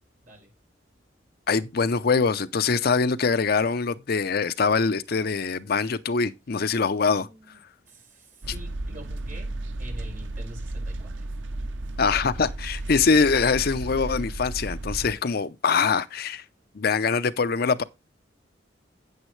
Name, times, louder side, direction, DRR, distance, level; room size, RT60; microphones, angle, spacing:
voice 1, 1.5-7.3 8.5-8.6 12.0-16.4 16.7-17.8, left 5 dB, 55° left, 0.6 m, -23 dB
voice 2, 6.9-7.6 7.9-9.5 9.8-11.1, right 1 dB, 45° right, 5.7 m, -46 dB
sound 1, 8.4-15.1, right 2 dB, 80° right, 0.7 m, -34 dB
9.4 x 9.1 x 3.2 m
head